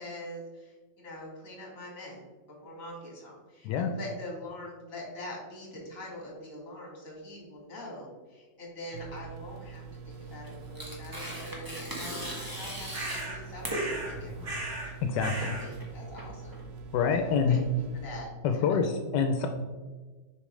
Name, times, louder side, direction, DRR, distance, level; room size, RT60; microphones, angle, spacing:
voice 1, 0.0-2.2 2.6-14.6 15.1-16.6 17.1-17.6 18.0-18.8, left 1 dB, 50° left, -2 dB, 2.3 m, -44 dB
sound 1, 8.9-18.2, right 5 dB, 75° right, 1.1 m, -45 dB
Tearing, 10.1-16.9, right 1 dB, 15° right, 1.0 m, -39 dB
sound 2, 12.9-13.4 13.7-14.2 14.4-14.9 15.2-15.7, right 2 dB, 45° right, 2.5 m, -36 dB
voice 2, 15.0-15.5 16.9-17.6 18.4-19.5, left 6 dB, 85° left, 5 dB, 1.2 m, -26 dB
6.9 x 5.1 x 3.1 m, 1.3 s
omnidirectional pair, 1.8 m